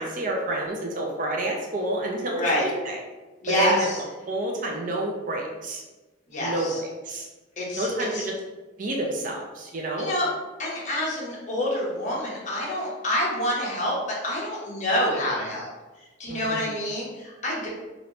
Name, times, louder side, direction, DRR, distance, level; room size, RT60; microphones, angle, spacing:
voice 1, 0.0-3.0 3.6-3.9 4.3-5.8 6.4-7.3 7.8-8.3 8.8-10.1 16.3-16.7, right 1 dB, 45° right, 0 dB, 0.5 m, -29 dB
voice 2, 3.4-4.0 6.3-6.8 7.6-7.9 8.1-8.2 10.0-10.3 10.6-15.7 16.2-17.7, left 1 dB, 40° left, -5 dB, 1.0 m, -27 dB
3.1 x 2.6 x 2.9 m, 1.2 s
head